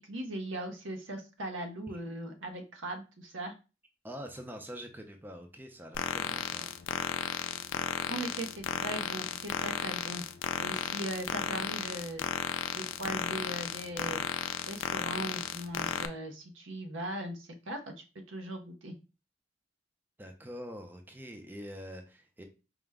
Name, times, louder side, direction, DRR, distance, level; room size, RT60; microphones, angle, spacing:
voice 1, 0.1-3.5 8.1-10.2 10.6-12.2 12.7-14.2 14.7-17.9 18.3-18.9, right 1 dB, 90° right, 4 dB, 0.8 m, -39 dB
voice 2, 4.0-6.9 20.2-22.4, equal, 10° right, 4 dB, 0.5 m, -45 dB
sound 1, 5.9-16.1, left 8 dB, 85° left, 0.4 m, -34 dB
4.8 x 2.1 x 3.5 m, 0.31 s
head